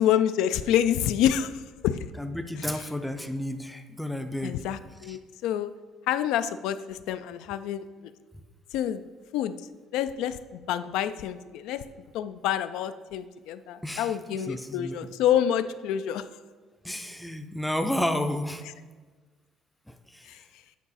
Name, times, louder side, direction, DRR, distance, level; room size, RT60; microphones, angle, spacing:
voice 1, 0.0-2.0 4.4-5.7 6.1-7.8 8.7-9.0 9.3-9.6 9.9-11.9 12.1-16.3 20.3-20.4, left 10 dB, 80° left, 12 dB, 0.3 m, -27 dB
voice 2, 2.2-4.6 5.1-5.2 13.8-14.2 14.5-15.0 16.8-18.6 19.9-20.3, left 1 dB, ahead, 7 dB, 0.4 m, -31 dB
8.3 x 4.8 x 4.1 m, 1.4 s
cardioid pair, 140°, 0 cm